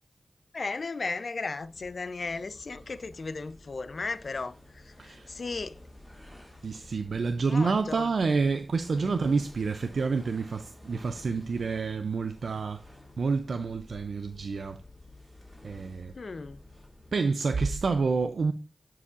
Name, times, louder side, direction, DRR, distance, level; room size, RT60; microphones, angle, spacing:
voice 1, 0.5-5.8 7.5-8.1 9.0-9.3 16.1-16.6, left 4 dB, 70° left, 0.5 m, -36 dB
sound 1, 1.6-17.4, left 1 dB, 5° left, 2.4 m, -52 dB
voice 2, 6.6-12.8 13.2-14.8 15.6-16.1 17.1-18.5, right 4 dB, 90° right, 0.4 m, -28 dB
9.6 x 4.7 x 2.4 m
wide cardioid pair, 55°, 0 cm